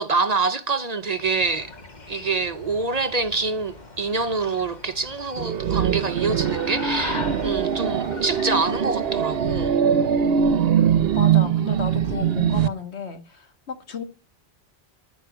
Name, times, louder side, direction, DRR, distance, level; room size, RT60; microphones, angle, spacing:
voice 1, 0.0-1.7 2.1-9.8, right 4 dB, 45° right, 0.7 m, -26 dB
sound 1, 1.0-9.7, left 3 dB, 40° left, 1.8 m, -39 dB
sound 2, 5.4-12.7, right 8 dB, 65° right, 0.9 m, -22 dB
voice 2, 11.1-14.0, left 4 dB, 85° left, 1.8 m, -33 dB
10.5 x 9.3 x 6.1 m
omnidirectional pair, 1.1 m